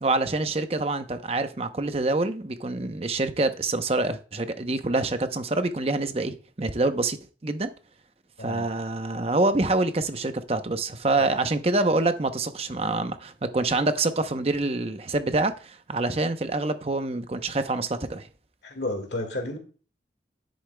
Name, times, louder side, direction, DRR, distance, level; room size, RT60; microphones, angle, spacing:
voice 1, 0.0-7.2 7.4-7.7 8.4-18.3, right 2 dB, 35° right, 0.7 m, -26 dB
voice 2, 18.6-19.6, left 1 dB, 75° left, 1.9 m, -32 dB
10.5 x 8.0 x 2.2 m
head